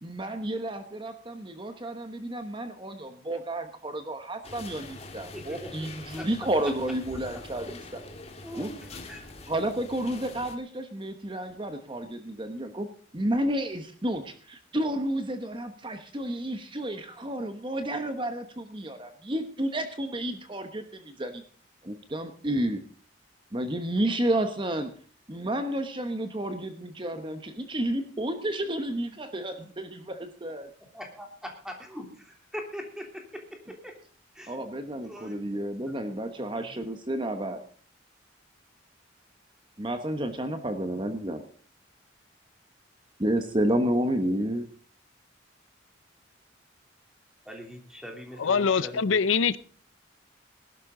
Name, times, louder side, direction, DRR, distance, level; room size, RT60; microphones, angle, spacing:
voice 1, 0.0-7.7 8.5-8.7 9.5-12.9 13.1-21.4 21.8-22.8 23.5-24.9 25.3-30.7 34.5-37.6 39.8-41.4 43.2-44.7, right 1 dB, 25° right, 1.1 m, -31 dB
sound 1, 4.4-10.6, left 2 dB, 30° left, 1.8 m, -44 dB
voice 2, 5.3-5.9 6.1-6.3 7.6-7.7 8.4-9.3 30.9-33.0 33.8-33.9 34.3-34.6 35.0-35.4 35.9-36.0 36.4-36.6 47.4-49.2, equal, 5° right, 3.1 m, -41 dB
voice 3, 48.4-49.6, left 5 dB, 85° left, 0.6 m, -23 dB
20.0 x 12.0 x 3.8 m
head